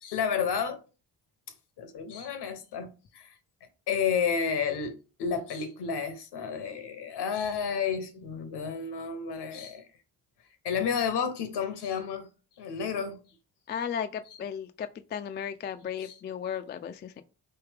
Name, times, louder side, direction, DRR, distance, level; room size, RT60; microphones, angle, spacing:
voice 1, 0.0-0.8 1.8-3.3 3.9-4.9 5.2-9.9 10.6-12.3 12.6-13.2 16.0-16.1, left 6 dB, 65° left, 0.9 m, -31 dB
voice 2, 13.7-17.2, left 8 dB, 25° left, 0.3 m, -35 dB
3.3 x 2.7 x 3.4 m
hypercardioid pair, 45°, 43 cm